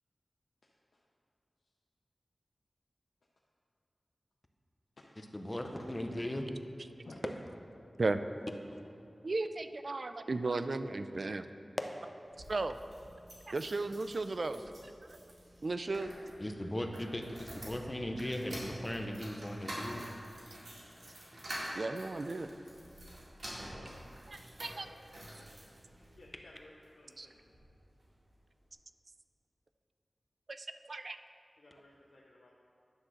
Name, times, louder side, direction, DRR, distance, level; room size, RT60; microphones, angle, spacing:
voice 1, 5.2-6.4 16.4-20.1, left 1 dB, 25° left, 4 dB, 0.6 m, -38 dB
voice 2, 9.2-11.5 12.5-12.8 13.5-14.9 15.6-16.1 21.8-22.5 24.3-24.9 27.2-27.3 30.5-31.2, right 3 dB, 60° right, 10 dB, 0.3 m, -35 dB
sound 1, 12.2-26.2 26.8-27.7 28.0-28.1 28.3-28.4, right 1 dB, 85° right, 2.1 m, -48 dB
voice 3, 26.2-27.4 31.6-32.5, left 2 dB, 85° left, -3 dB, 0.6 m, -56 dB
9.8 x 3.7 x 6.4 m, 2.7 s
wide cardioid pair, 70°, 0 cm